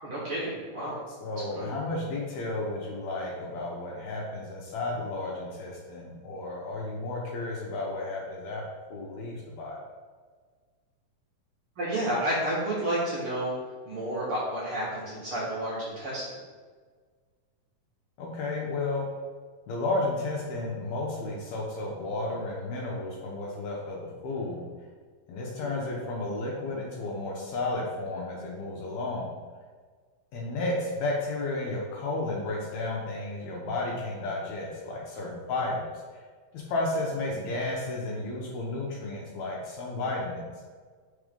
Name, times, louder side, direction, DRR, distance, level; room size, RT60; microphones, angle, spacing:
voice 1, 0.0-1.0 1.5-1.7 11.8-13.6 13.8-16.3 25.5-25.7, right 1 dB, 55° right, -6 dB, 1.7 m, -30 dB
voice 2, 1.2-8.6 8.9-9.8 18.2-19.1 19.7-24.7 25.3-29.3 30.3-35.8 36.5-40.5, left 2 dB, 70° left, -3 dB, 1.9 m, -32 dB
4.9 x 4.1 x 5.2 m, 1.5 s
omnidirectional pair, 3.8 m